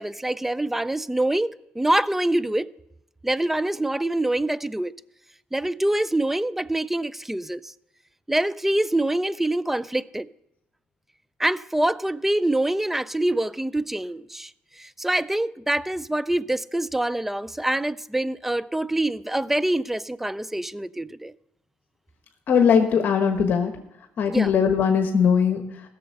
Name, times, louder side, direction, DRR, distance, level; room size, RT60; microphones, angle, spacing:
voice 1, 0.0-2.7 3.2-4.9 5.5-7.7 8.3-10.3 11.4-14.5 14.8-21.3 24.3-24.5, right 1 dB, 5° right, 0.3 m, -25 dB
voice 2, 22.5-23.7 24.2-25.9, left 6 dB, 55° left, 1.2 m, -20 dB
15.5 x 6.8 x 6.4 m
cardioid pair, 95°, 4 cm